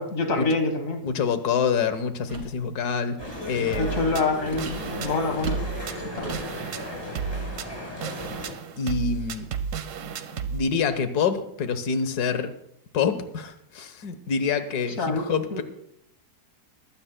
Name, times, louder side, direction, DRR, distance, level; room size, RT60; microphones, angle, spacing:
voice 1, 0.0-1.0 3.6-5.6 6.1-6.4 15.0-15.6, left 3 dB, 55° left, 5 dB, 1.8 m, -26 dB
voice 2, 1.0-3.2 3.5-4.1 8.8-9.5 10.5-12.5 12.9-15.6, left 6 dB, 75° left, 10 dB, 1.6 m, -26 dB
sound 1, 2.3-2.6 4.5-6.6, right 2 dB, 40° right, 2.2 m, -38 dB
sound 2, 3.2-8.5, equal, 15° left, 6.3 m, -36 dB
sound 3, 3.7-10.6, right 6 dB, 75° right, 1.4 m, -33 dB
21.5 x 15.5 x 2.2 m, 0.76 s
omnidirectional pair, 1.7 m